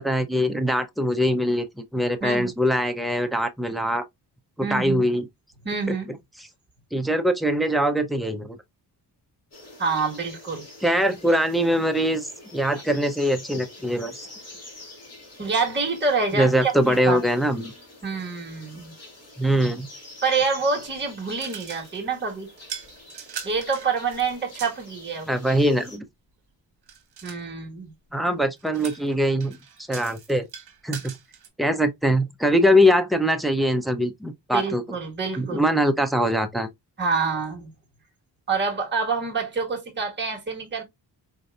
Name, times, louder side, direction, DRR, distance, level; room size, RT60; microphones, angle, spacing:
voice 1, 0.0-4.0 4.6-5.2 6.4-6.5 6.9-8.6 10.8-14.1 16.3-17.7 19.4-19.9 25.3-26.0 28.1-29.6 29.9-30.5 30.8-31.2 31.6-34.8 35.4-36.7, equal, ahead, 0.4 m, -22 dB
voice 2, 2.2-2.5 4.6-5.1 5.6-6.1 9.8-10.6 15.4-17.2 18.0-18.9 20.2-22.5 23.4-25.3 27.2-27.9 34.5-35.6 37.0-37.7 38.5-40.8, right 4 dB, 25° right, 1.4 m, -27 dB
sound 1, 9.5-26.0, left 2 dB, 40° left, 1.8 m, -46 dB
sound 2, 20.8-22.1 22.6-24.9 26.9-27.5 28.6-31.5, right 7 dB, 70° right, 1.0 m, -41 dB
4.2 x 2.6 x 2.3 m
wide cardioid pair, 120°, 41 cm